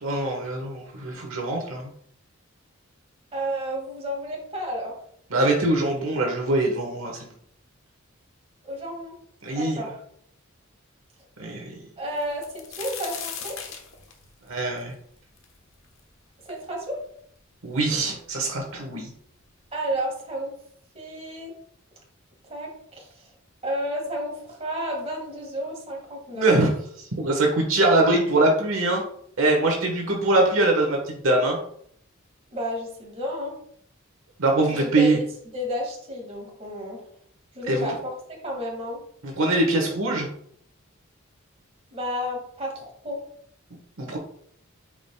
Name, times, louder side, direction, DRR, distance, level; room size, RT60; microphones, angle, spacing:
voice 1, 0.0-1.9 5.3-7.3 9.4-9.8 11.4-11.7 14.5-14.9 17.6-19.1 26.3-26.7 27.2-29.0 29.4-31.6 34.4-35.2 37.7-37.9 39.2-40.3 44.0-44.2, right 2 dB, 70° right, 1 dB, 1.3 m, -23 dB
voice 2, 3.3-4.9 8.6-9.2 9.5-9.9 12.0-13.6 16.4-17.0 19.7-20.5 20.9-21.5 22.5-23.3 23.6-26.5 32.5-33.5 34.7-35.3 35.5-37.0 37.5-39.0 41.9-43.2, equal, 30° right, -1 dB, 1.9 m, -31 dB
sound 1, 12.2-16.0 16.5-16.6 17.4-17.5 17.7-18.4 19.3-19.4 19.8-20.0, left 7 dB, 70° left, 1.2 m, -38 dB
8.9 x 5.0 x 2.3 m, 0.66 s
head